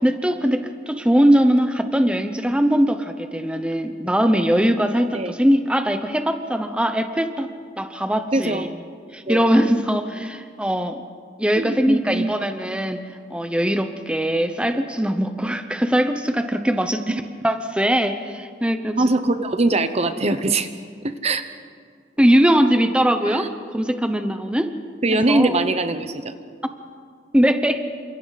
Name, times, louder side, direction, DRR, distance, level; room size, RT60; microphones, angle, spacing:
voice 1, 0.0-7.5 7.8-8.7 9.1-11.0 11.4-13.0 13.3-19.0 22.2-24.7 25.3-25.6 27.3-27.9, equal, 5° right, 7 dB, 0.9 m, -21 dB
voice 2, 8.3-8.7 9.3-9.5 11.6-12.4 17.1-17.2 19.0-20.7 21.0-21.5 23.3-23.5 25.0-26.3, right 2 dB, 35° right, 10 dB, 0.9 m, -22 dB
29.0 x 26.5 x 4.2 m, 2.1 s
head